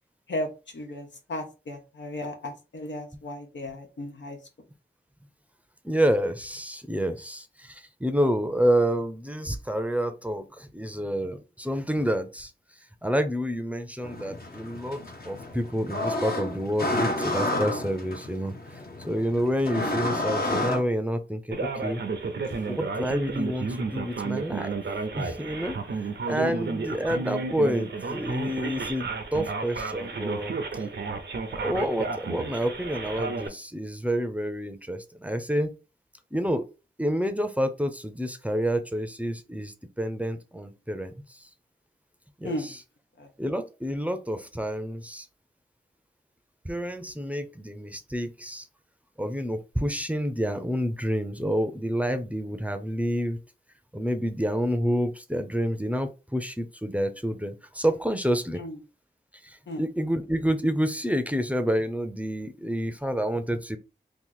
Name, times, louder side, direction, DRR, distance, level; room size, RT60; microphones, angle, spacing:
voice 1, 0.3-4.4 22.4-22.6 26.3-26.5 42.4-42.7 43.2-43.3 58.6-58.8 59.7-59.8, left 1 dB, 90° left, 4 dB, 0.8 m, -35 dB
voice 2, 5.8-12.5 13.0-18.5 19.0-22.0 22.7-24.7 25.1-25.8 26.3-30.6 31.5-35.7 36.3-36.6 37.0-41.1 42.4-42.7 43.4-45.3 46.6-48.7 49.2-53.4 53.9-58.6 59.4-63.8, equal, 10° right, 8 dB, 0.5 m, -28 dB
sound 1, 14.0-20.8, left 1 dB, 55° left, 0.9 m, -30 dB
Male speech man speaking, 21.5-33.5, right 4 dB, 75° right, 0.6 m, -32 dB
2.9 x 2.4 x 3.8 m, 0.30 s
wide cardioid pair, 60°, 18 cm